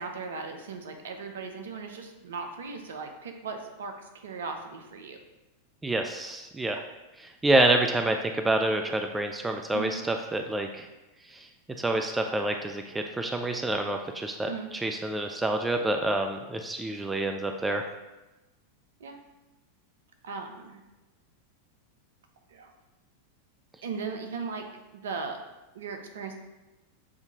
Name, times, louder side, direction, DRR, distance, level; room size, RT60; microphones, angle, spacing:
voice 1, 0.0-5.2 9.7-10.0 14.5-14.7 19.0-19.2 20.2-20.8 22.5-22.7 23.8-24.7 24.9-25.4 25.7-26.3, right 4 dB, 60° right, 5 dB, 0.6 m, -37 dB
voice 2, 5.8-6.8 7.2-10.9 11.3-11.5 11.8-17.8, right 2 dB, 10° right, 4 dB, 0.3 m, -27 dB
6.8 x 2.7 x 2.9 m, 1.1 s
figure-of-eight pair, 90°, 0 cm